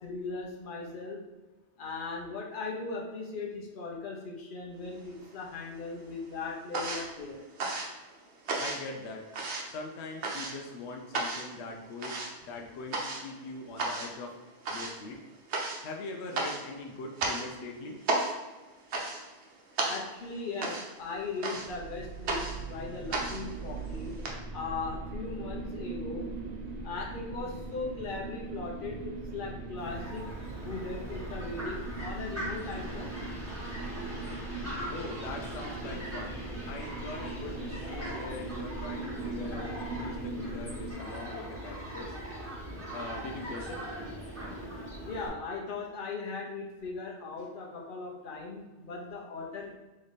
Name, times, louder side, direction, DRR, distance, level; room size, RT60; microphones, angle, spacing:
voice 1, 0.0-1.2 1.8-7.4 19.9-24.1 24.5-26.3 26.8-30.2 30.6-33.1 45.1-49.8, left 3 dB, 55° left, -2 dB, 1.0 m, -38 dB
sound 1, 4.9-5.7 6.0-24.3, right 2 dB, 80° right, 1.0 m, -35 dB
voice 2, 8.6-9.3 9.6-14.3 14.7-15.2 15.8-18.0 34.9-36.4 36.6-42.2 42.9-43.8, left 3 dB, 75° left, 2 dB, 0.8 m, -42 dB
sound 2, 21.7-40.9, right 3 dB, 50° right, 0.5 m, -40 dB
Fowl, 29.8-45.3, right 1 dB, 15° right, 1.3 m, -40 dB
3.2 x 3.1 x 4.0 m, 1.1 s
omnidirectional pair, 1.1 m